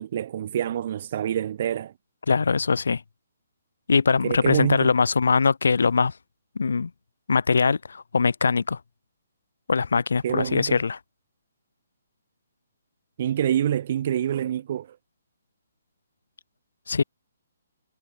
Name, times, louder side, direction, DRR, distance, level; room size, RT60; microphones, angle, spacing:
voice 1, 0.0-1.9 4.2-4.9 10.2-10.8 13.2-15.0, right 10 dB, 45° right, 0.7 m, -26 dB
voice 2, 2.3-3.0 3.9-6.1 6.5-6.9 7.3-8.8 9.7-11.0 16.9-17.0, left 5 dB, 75° left, 1.6 m, -22 dB
hypercardioid pair, 150°, 0 cm